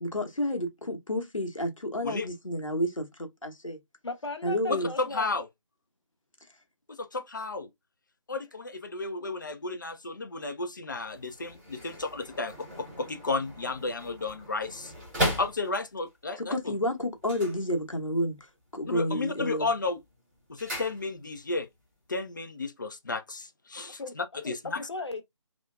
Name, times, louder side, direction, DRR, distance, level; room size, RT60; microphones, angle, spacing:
voice 1, 0.0-3.1 3.4-3.8 4.4-4.9 16.4-18.4 18.7-19.7, equal, 85° left, 0.9 m, -30 dB
voice 2, 4.0-5.4 24.0-24.2 24.4-25.2, left 3 dB, 55° left, 0.8 m, -36 dB
voice 3, 4.7-5.5 7.0-7.7 8.3-14.9 15.4-16.8 18.9-20.0 20.5-21.7 22.1-24.8, left 3 dB, 40° left, 0.3 m, -33 dB
sound 1, 11.1-16.1 17.1-18.3 18.6-19.1 19.4-21.5 21.8-21.9, equal, 5° right, 0.9 m, -37 dB
2.8 x 2.2 x 2.2 m
figure-of-eight pair, 155°, 17 cm